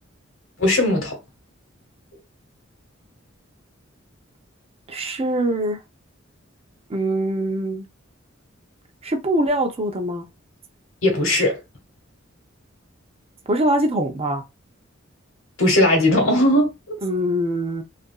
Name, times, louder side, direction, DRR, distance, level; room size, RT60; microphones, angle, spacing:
voice 1, 0.6-1.2 11.0-11.6 15.6-17.0, left 1 dB, 75° left, 1.0 m, -18 dB
voice 2, 4.9-5.8 6.9-7.9 9.0-10.3 13.5-14.4 17.0-17.8, right 1 dB, 30° right, 0.5 m, -23 dB
2.8 x 2.4 x 2.3 m
head